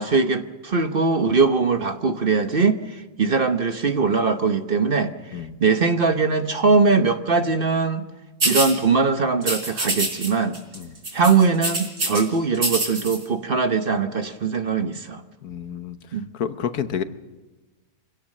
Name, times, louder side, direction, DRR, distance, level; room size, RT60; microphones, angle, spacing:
voice 1, 0.0-8.0 8.4-10.6 11.1-15.2 16.1-16.3, right 4 dB, 40° right, 8 dB, 1.1 m, -21 dB
sound 1, 8.4-8.7 9.4-10.3 10.5-10.8 11.0-12.2 12.6-13.2, right 2 dB, 70° right, 4.6 m, -24 dB
voice 2, 15.4-16.0 16.3-17.0, left 8 dB, 85° left, 11 dB, 1.5 m, -29 dB
24.5 x 17.5 x 6.5 m, 1.2 s
omnidirectional pair, 1.5 m